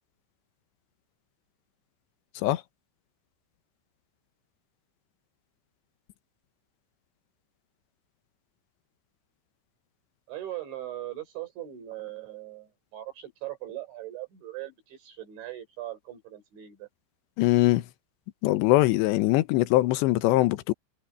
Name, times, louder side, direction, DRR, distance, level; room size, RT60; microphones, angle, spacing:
voice 1, 10.3-16.9, right 14 dB, 85° right, 7.9 m, -40 dB
voice 2, 17.4-17.9 18.4-20.7, left 17 dB, 80° left, 3.1 m, -22 dB
omnidirectional pair, 5.1 m